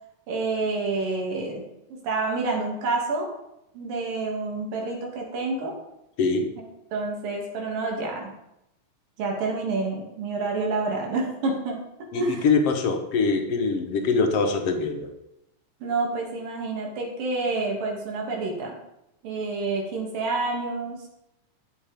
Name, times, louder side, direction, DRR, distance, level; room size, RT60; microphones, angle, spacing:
voice 1, 0.3-1.6 1.9-3.3 3.7-5.7 6.9-8.3 9.2-11.8 12.1-12.5 15.8-18.8 19.2-21.0, right 3 dB, 85° right, -1 dB, 4.2 m, -28 dB
voice 2, 12.1-15.1, left 4 dB, 55° left, 5 dB, 1.9 m, -23 dB
13.5 x 7.8 x 5.2 m, 0.85 s
omnidirectional pair, 3.8 m